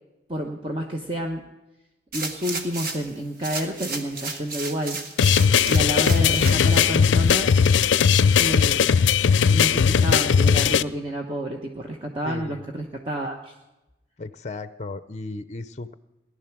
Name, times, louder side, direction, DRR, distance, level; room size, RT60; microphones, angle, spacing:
voice 1, 0.3-1.4 2.1-5.0 5.6-7.5 8.4-8.9 9.5-13.5, equal, 30° right, 1 dB, 1.0 m, -29 dB
sound 1, 2.1-3.1 3.4-7.0 7.5-7.6, right 3 dB, 50° right, 1.5 m, -33 dB
sound 2, 5.2-10.8, left 7 dB, 90° left, 0.4 m, -18 dB
voice 2, 12.2-12.6 14.2-15.9, left 3 dB, 40° left, 13 dB, 0.5 m, -35 dB
18.0 x 11.0 x 6.0 m, 0.98 s
head